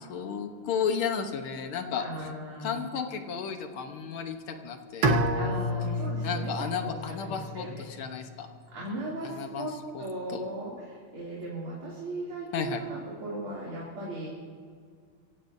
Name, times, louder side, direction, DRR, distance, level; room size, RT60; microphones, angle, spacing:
voice 1, 0.1-2.3 2.6-5.2 6.2-8.5 9.2-9.7 9.9-10.0 10.3-10.4 12.5-12.8, left 7 dB, 80° left, 6 dB, 1.9 m, -33 dB
voice 2, 2.0-2.8 5.3-6.5 6.8-7.0 7.2-7.9 8.7-9.7 10.0-14.3, right 1 dB, 90° right, -6 dB, 3.7 m, -37 dB
Bowed string instrument, 5.0-8.0, equal, 65° right, 1.8 m, -29 dB
24.5 x 16.5 x 2.7 m, 2.1 s
omnidirectional pair, 2.3 m